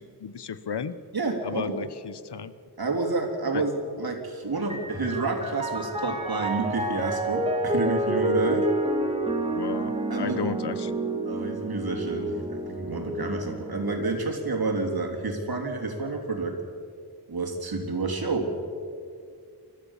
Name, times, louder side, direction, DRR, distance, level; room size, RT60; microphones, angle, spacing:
voice 1, 0.0-0.9 1.4-2.5 3.5-3.6 9.5-11.0, left 6 dB, 80° left, 14 dB, 0.9 m, -34 dB
voice 2, 1.1-1.9 2.8-8.7 10.1-10.4 11.2-16.5 17.3-18.5, right 3 dB, 65° right, 2 dB, 3.4 m, -29 dB
Piano, 4.5-14.2, right 1 dB, 15° right, 2.5 m, -29 dB
28.5 x 14.0 x 7.3 m, 2.3 s
wide cardioid pair, 80°, 40 cm